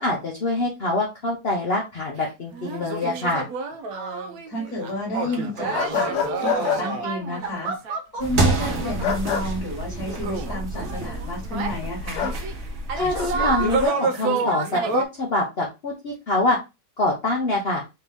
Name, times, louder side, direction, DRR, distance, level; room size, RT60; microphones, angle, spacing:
voice 1, 0.0-3.4 12.9-16.6 17.0-17.8, left 2 dB, 50° left, -1 dB, 0.9 m, -25 dB
sound 1, 2.2-2.3 2.5-11.7 12.2-12.5 12.9-15.0, right 4 dB, 70° right, 1.0 m, -29 dB
voice 2, 4.5-7.7 8.1-12.3, left 1 dB, 65° left, -5 dB, 2.2 m, -31 dB
sound 2, 5.7-6.8 9.0-9.5 12.2-12.4 13.1-13.5, left 8 dB, 90° left, 1.3 m, -26 dB
sound 3, 8.2-13.9, right 2 dB, 45° right, 1.4 m, -28 dB
4.3 x 2.8 x 3.3 m, 0.25 s
omnidirectional pair, 1.7 m